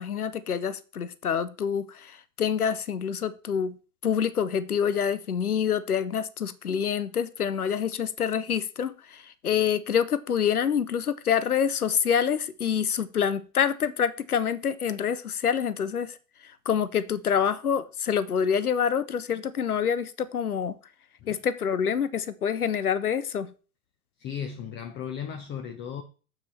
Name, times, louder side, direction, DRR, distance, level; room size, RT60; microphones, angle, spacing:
voice 1, 0.0-3.8 4.0-16.2 16.4-20.8 21.3-23.5, left 8 dB, 90° left, 0.7 m, -27 dB
voice 2, 24.2-26.0, left 8 dB, 25° left, 0.8 m, -36 dB
7.1 x 6.0 x 4.2 m
figure-of-eight pair, 100°, 43 cm